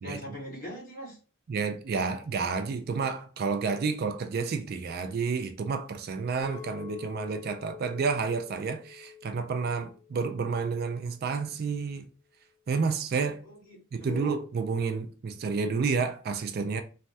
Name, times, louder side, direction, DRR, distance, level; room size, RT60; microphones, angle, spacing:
voice 1, 0.0-1.2 13.4-14.4, left 1 dB, 45° left, 1.5 m, -41 dB
voice 2, 1.5-12.1 12.7-13.4 13.9-16.8, right 5 dB, 45° right, 0.3 m, -30 dB
Chink clink, 6.4-10.7 11.2-11.6, left 9 dB, 20° left, 1.2 m, -47 dB
3.2 x 2.2 x 2.6 m
head